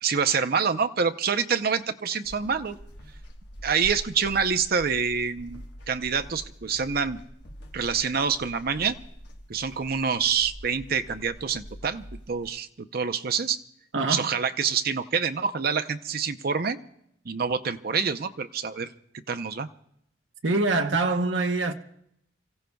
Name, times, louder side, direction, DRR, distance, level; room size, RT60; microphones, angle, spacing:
voice 1, 0.0-2.8 3.6-7.2 7.7-9.0 9.5-13.6 14.1-16.8 17.3-18.9 19.3-19.7, right 6 dB, 55° right, 0.7 m, -26 dB
sound 1, 2.2-12.5, equal, 60° left, 1.4 m, -45 dB
voice 2, 13.9-14.3 20.4-21.7, right 3 dB, 75° right, 0.9 m, -24 dB
29.0 x 15.5 x 2.3 m
head